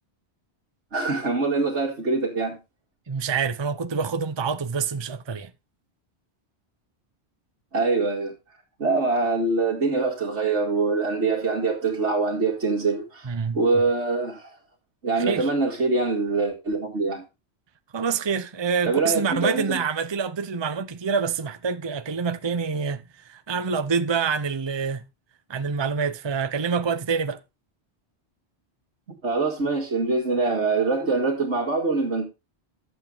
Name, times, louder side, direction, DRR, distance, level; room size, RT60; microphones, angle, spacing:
voice 1, 0.9-2.6 7.7-8.3 8.8-14.5 15.0-17.2 18.9-19.8 29.2-32.3, right 3 dB, 80° right, 2.6 m, -24 dB
voice 2, 3.1-5.5 13.2-13.6 15.2-15.5 17.9-25.0 25.5-27.4, right 5 dB, 25° right, 0.7 m, -26 dB
11.5 x 8.1 x 3.9 m
omnidirectional pair, 1.2 m